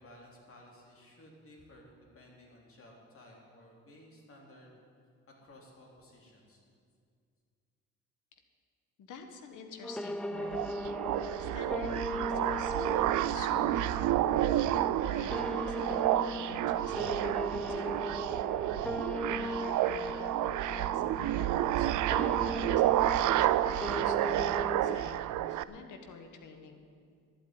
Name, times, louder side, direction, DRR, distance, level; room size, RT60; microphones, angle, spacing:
voice 1, 0.0-4.8 5.4-6.6, left 1 dB, 45° left, -1 dB, 3.8 m, -56 dB
voice 2, 9.0-10.6 11.4-14.7 15.0-18.5 19.3-26.8, left 5 dB, 80° left, 6 dB, 1.6 m, -49 dB
sound 1, 9.8-25.0, left 1 dB, 5° left, 0.5 m, -38 dB
sound 2, 10.4-25.6, right 13 dB, 80° right, 0.5 m, -30 dB
11.5 x 8.4 x 9.7 m, 2.2 s
cardioid pair, 90°, 30 cm